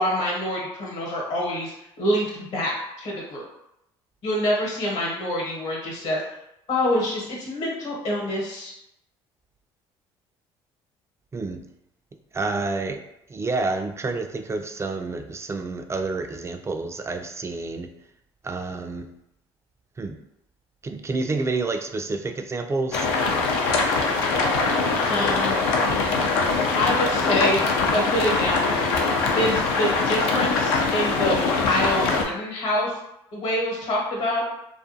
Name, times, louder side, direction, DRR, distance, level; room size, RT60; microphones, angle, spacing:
voice 1, 0.0-1.7 2.0-3.4 4.2-6.2 6.7-8.7 25.1-25.6 26.7-28.8 29.3-31.4 31.6-33.0 33.3-34.4, left 1 dB, 65° left, -3 dB, 1.0 m, -26 dB
voice 2, 11.3-11.6 12.3-13.0 13.3-17.9 18.4-19.1 20.0-20.2 20.8-23.1, right 3 dB, 20° right, 6 dB, 0.3 m, -29 dB
sound 1, 22.9-32.3, left 4 dB, 85° left, 0.4 m, -22 dB
2.4 x 2.3 x 2.6 m, 0.83 s
hypercardioid pair, 65°, 13 cm